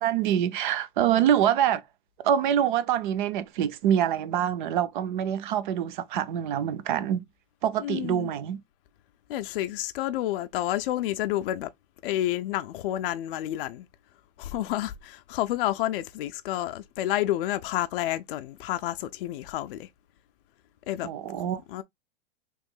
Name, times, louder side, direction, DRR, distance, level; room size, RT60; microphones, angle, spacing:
voice 1, 0.0-1.8 2.2-7.2 7.6-8.6 21.0-21.6, right 10 dB, 50° right, 0.5 m, -25 dB
voice 2, 7.8-8.3 9.3-11.7 12.0-13.9 14.4-19.9 20.9-21.1 21.7-21.8, left 14 dB, 55° left, 0.4 m, -29 dB
3.0 x 2.6 x 3.7 m
supercardioid pair, 155°, 32 cm